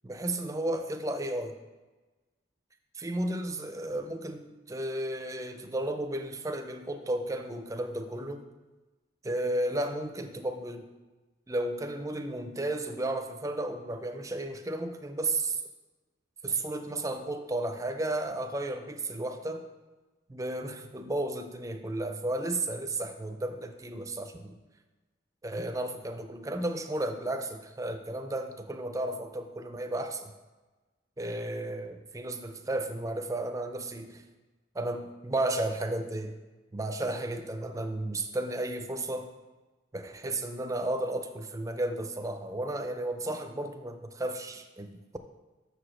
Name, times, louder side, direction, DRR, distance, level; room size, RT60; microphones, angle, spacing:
voice 1, 0.0-1.6 2.9-8.4 9.2-10.9 11.5-15.6 16.4-19.7 20.3-24.6 25.4-30.3 31.2-34.2 34.7-36.3 36.7-39.3 39.9-44.9, right 1 dB, 15° right, 7 dB, 0.4 m, -33 dB
6.5 x 4.9 x 6.2 m, 1.2 s
head